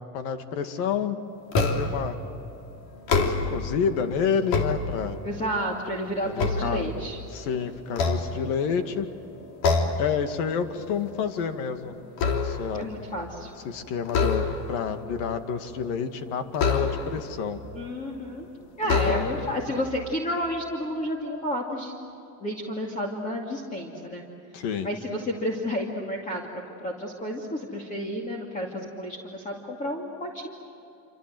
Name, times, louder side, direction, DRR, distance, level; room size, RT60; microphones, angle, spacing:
voice 1, 0.1-1.2 1.6-2.2 3.2-5.2 6.2-6.9 7.3-9.1 10.0-11.9 12.4-12.9 13.6-17.6 18.8-19.6 24.5-24.9, left 6 dB, 80° left, 8 dB, 2.3 m, -29 dB
sound 1, 1.5-2.1 2.9-3.7 4.3-5.4 5.9-7.4 7.9-8.9 9.6-10.1 10.5-10.8 11.1-12.8 14.1-14.9 16.5-17.3 18.1-18.2 18.8-19.6, left 4 dB, 60° left, 3.3 m, -26 dB
voice 2, 5.2-7.2 12.7-13.5 17.7-18.5 18.8-21.9 22.4-24.2 24.8-26.5 26.8-30.5, equal, 20° left, 0 dB, 2.5 m, -31 dB
27.5 x 27.0 x 7.9 m, 2.9 s
cardioid pair, 150°, 40 cm